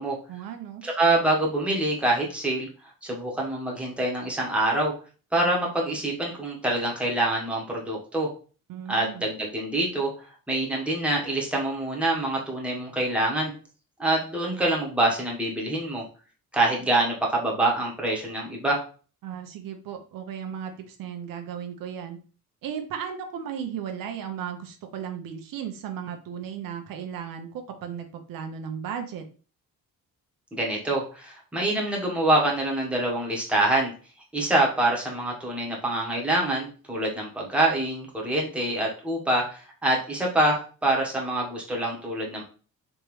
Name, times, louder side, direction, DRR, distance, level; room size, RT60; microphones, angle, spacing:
voice 1, 0.3-0.8 8.7-9.3 19.2-22.2 22.6-29.2, right 8 dB, 80° right, 5 dB, 0.7 m, -35 dB
voice 2, 0.8-2.7 3.0-4.9 5.3-8.3 8.9-10.1 10.5-13.5 14.0-16.0 16.5-18.8 30.5-33.9 34.3-42.4, right 1 dB, 5° right, -2 dB, 1.0 m, -25 dB
3.5 x 3.1 x 3.1 m, 0.38 s
cardioid pair, 135°, 33 cm